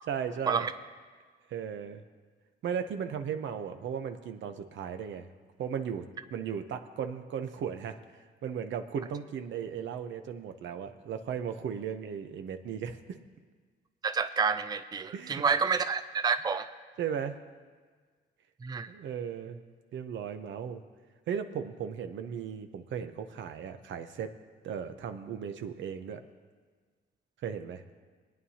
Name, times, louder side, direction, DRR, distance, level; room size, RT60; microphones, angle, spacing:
voice 1, 0.1-0.7 1.5-2.0 2.6-5.3 5.6-6.1 6.3-8.0 8.4-13.2 15.1-15.4 17.0-17.4 18.9-19.7 19.9-20.8 21.3-24.3 24.6-26.2 27.4-27.8, right 7 dB, 70° right, 8 dB, 0.9 m, -36 dB
voice 2, 14.0-16.7 18.6-18.9, right 5 dB, 20° right, 11 dB, 0.4 m, -29 dB
23.0 x 9.4 x 2.9 m, 1.5 s
cardioid pair, 90°, 20 cm